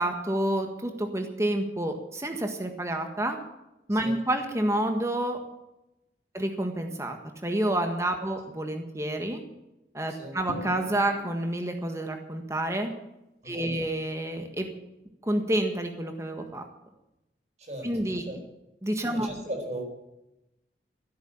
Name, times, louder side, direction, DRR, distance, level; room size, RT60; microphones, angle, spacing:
voice 1, 0.0-3.4 3.9-5.4 6.3-9.4 9.9-12.9 13.4-14.7 15.2-16.6 17.8-18.2 18.8-19.3, right 1 dB, 15° right, 5 dB, 1.6 m, -29 dB
Drum, 10.5-12.2, left 1 dB, 70° left, 2.2 m, -42 dB
voice 2, 13.4-13.8 17.6-17.9 18.3-18.4 19.1-19.8, right 1 dB, 40° right, 2 dB, 4.8 m, -37 dB
15.0 x 8.8 x 8.9 m, 0.91 s
head